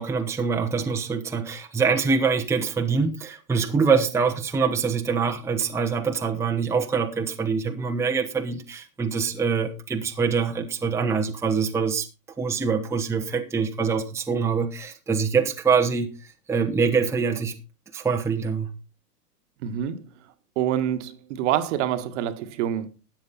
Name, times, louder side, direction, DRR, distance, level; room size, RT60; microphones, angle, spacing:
voice 1, 0.0-12.1 12.4-17.6 17.9-18.7, right 5 dB, 5° right, 1.0 m, -24 dB
voice 2, 19.6-20.1 20.6-22.9, right 11 dB, 45° right, 1.6 m, -26 dB
13.5 x 9.3 x 4.1 m
hypercardioid pair, 115°, 48 cm